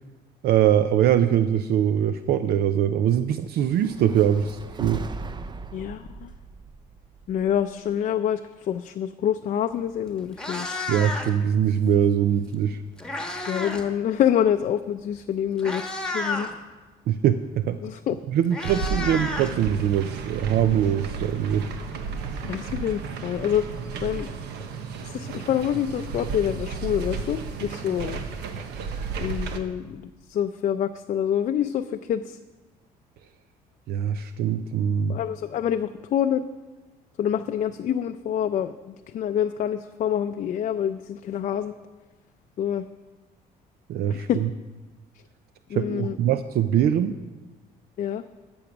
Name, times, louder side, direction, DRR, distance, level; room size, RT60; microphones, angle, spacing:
voice 1, 0.4-5.0 10.9-12.8 17.1-17.8 18.3-21.7 33.9-35.2 43.9-44.5 45.7-47.1, right 9 dB, 70° right, 11 dB, 0.5 m, -22 dB
sound 1, 3.7-7.9, right 4 dB, 25° right, 0.6 m, -38 dB
voice 2, 5.7-6.3 7.3-10.7 13.4-16.5 17.8-18.2 22.5-23.7 24.0-24.3 25.0-28.2 29.2-32.4 35.1-36.5 37.2-41.7 42.6-42.9 44.1-44.4 45.7-46.2 48.0-48.2, left 9 dB, 50° left, 7 dB, 0.5 m, -26 dB
Meow, 9.7-9.9 10.2-11.5 12.6-13.9 14.2-14.5 15.2-15.3 15.6-16.5 17.8-17.9 18.2-20.1, left 2 dB, 5° left, 1.4 m, -32 dB
sound 2, 18.7-29.6, right 5 dB, 85° right, 1.0 m, -33 dB
13.5 x 7.1 x 6.0 m, 1.2 s
cardioid pair, 110°, 17 cm